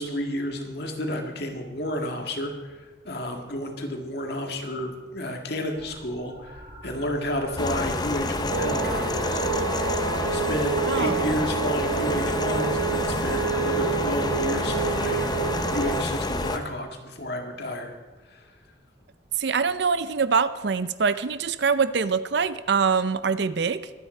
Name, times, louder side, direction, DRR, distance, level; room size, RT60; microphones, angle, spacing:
voice 1, 0.0-2.8 3.1-9.4 10.3-15.4 15.7-17.9 18.3-18.4, equal, 55° left, 3 dB, 2.0 m, -31 dB
sound 1, 5.7-11.5 12.8-13.3 15.0-15.1, right 1 dB, 35° right, 4.6 m, -47 dB
sound 2, 7.6-16.6, left 2 dB, 20° left, 0.7 m, -28 dB
sound 3, 8.5-16.0, right 5 dB, 85° right, 1.2 m, -28 dB
voice 2, 10.8-11.5 19.3-23.9, right 5 dB, 55° right, 14 dB, 0.5 m, -24 dB
23.0 x 9.2 x 4.4 m, 1.3 s
head